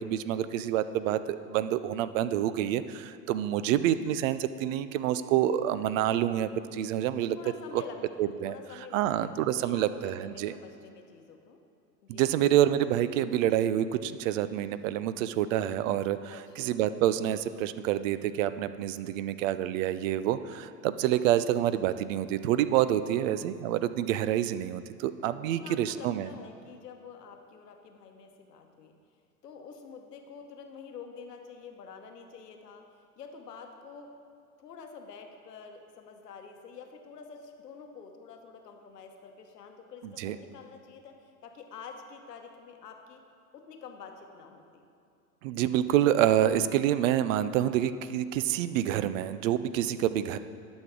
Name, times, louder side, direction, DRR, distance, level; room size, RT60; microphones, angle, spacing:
voice 1, 0.0-7.4 7.7-7.8 8.2-8.6 8.9-10.5 12.1-26.3 40.2-40.4 45.4-50.4, right 11 dB, 55° right, 13 dB, 0.5 m, -27 dB
voice 2, 7.3-11.6 12.0-12.4 16.3-16.7 21.0-21.3 22.9-23.7 25.4-29.0 29.4-32.8 33.2-34.1 34.6-43.2 43.5-44.8 49.9-50.1, left 5 dB, 85° left, 5 dB, 1.0 m, -48 dB
11.5 x 6.2 x 3.7 m, 2.5 s
hypercardioid pair, 90°, 47 cm